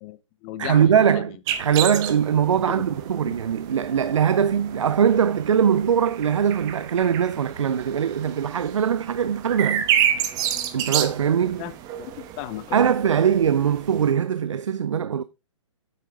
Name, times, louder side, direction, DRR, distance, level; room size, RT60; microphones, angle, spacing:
voice 1, 0.0-1.3 2.6-2.8 3.2-3.4 11.6-11.7 12.0-12.9, left 15 dB, 25° left, 0.7 m, -35 dB
voice 2, 0.6-9.9 10.7-11.6 12.7-15.2, right 8 dB, 70° right, 0.6 m, -21 dB
sound 1, 1.5-14.1, right 10 dB, 20° right, 1.0 m, -30 dB
9.2 x 7.5 x 3.5 m
hypercardioid pair, 140°, 16 cm